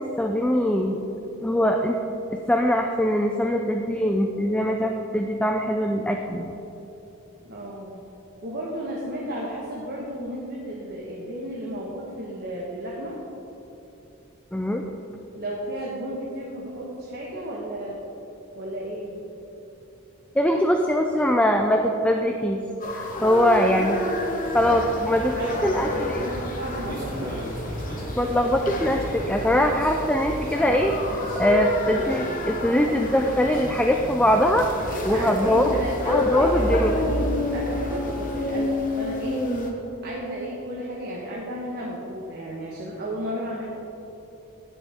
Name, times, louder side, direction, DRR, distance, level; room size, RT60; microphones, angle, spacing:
voice 1, 0.2-1.0 1.4-2.0 2.3-6.5 14.5-14.8 20.4-22.6 22.9-26.3 28.2-30.9 31.4-34.7 35.0-35.7 36.1-37.0, equal, 5° left, 3 dB, 0.4 m, -22 dB
voice 2, 7.4-8.0 8.4-13.2 15.4-18.0 18.5-19.2 24.2-24.7 25.4-27.6 34.8-39.4 40.0-43.7, equal, 50° right, -4 dB, 1.3 m, -33 dB
sound 1, 22.8-39.7, left 2 dB, 40° left, 1.2 m, -30 dB
sound 2, 24.5-38.3, equal, 20° right, 2.5 m, -34 dB
17.0 x 6.8 x 3.6 m, 3.0 s
head